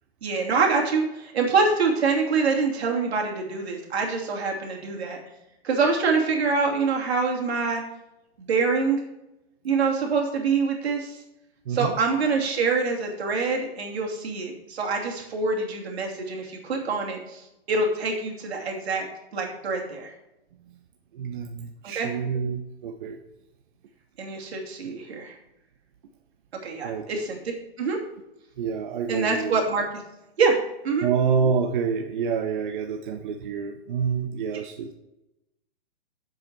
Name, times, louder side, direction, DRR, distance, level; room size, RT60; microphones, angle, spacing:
voice 1, 0.2-5.2 5.6-7.8 8.4-9.0 9.6-11.2 11.7-19.1 19.3-20.1 21.8-22.1 24.2-25.4 26.6-28.0 29.1-29.8 30.4-30.6 30.8-31.1, right 4 dB, 85° right, 1 dB, 2.8 m, -25 dB
voice 2, 11.7-12.0 21.1-23.2 26.8-27.0 28.6-29.6 31.0-34.9, right 6 dB, 50° right, 4 dB, 0.8 m, -27 dB
7.7 x 7.6 x 4.6 m, 0.90 s
hypercardioid pair, 165°, 31 cm